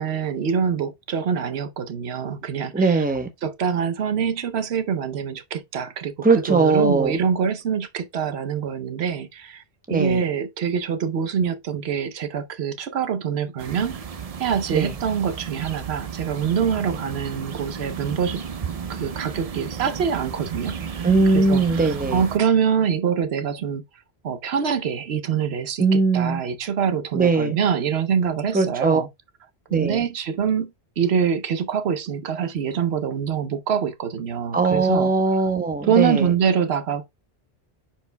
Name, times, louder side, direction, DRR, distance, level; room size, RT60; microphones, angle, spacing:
voice 1, 0.0-3.0 3.4-9.6 9.9-14.0 14.4-18.4 18.9-21.0 21.3-23.8 24.2-29.1 29.7-35.1 35.8-37.1, right 7 dB, 80° right, 1.0 m, -25 dB
voice 2, 2.7-3.3 6.2-7.2 9.9-10.2 14.7-14.9 21.0-22.3 25.8-26.4 27.1-27.6 28.5-29.0 29.7-30.0 34.5-36.3, right 3 dB, 10° right, 0.8 m, -20 dB
sound 1, 13.6-22.4, right 6 dB, 45° right, 0.6 m, -33 dB
10.0 x 4.6 x 2.2 m
omnidirectional pair, 1.1 m